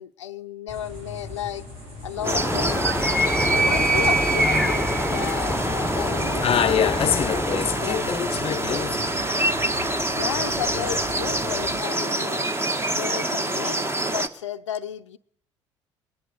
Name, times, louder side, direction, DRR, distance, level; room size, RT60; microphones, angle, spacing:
voice 1, 0.0-1.6 2.0-2.9 3.5-7.0 7.8-8.1 10.1-12.5 12.9-13.8 14.1-15.2, left 10 dB, 85° left, 0.6 m, -33 dB
sound 1, 0.7-11.8, left 2 dB, 70° right, 7.6 m, -40 dB
Animal, 2.2-8.0, right 1 dB, 5° left, 1.0 m, -25 dB
sound 2, 2.2-14.3, right 1 dB, 15° right, 1.3 m, -26 dB
voice 2, 6.4-9.1, left 9 dB, 40° left, 0.7 m, -25 dB
21.0 x 10.5 x 6.6 m
hypercardioid pair, 55°, 15 cm